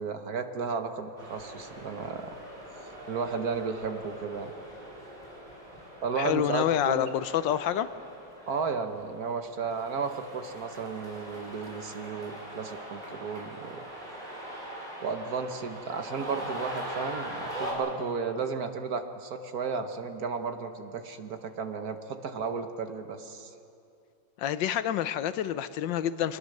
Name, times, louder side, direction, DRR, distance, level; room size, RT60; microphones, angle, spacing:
voice 1, 0.0-2.3 3.1-4.5 6.0-7.1 8.5-13.8 15.0-23.5, right 5 dB, 55° right, 7 dB, 1.4 m, -33 dB
sound 1, 1.2-17.7, right 1 dB, 20° right, 4.6 m, -42 dB
voice 2, 6.2-7.9 24.4-26.4, left 10 dB, 75° left, 13 dB, 1.3 m, -28 dB
25.0 x 20.0 x 6.6 m, 2.7 s
omnidirectional pair, 2.1 m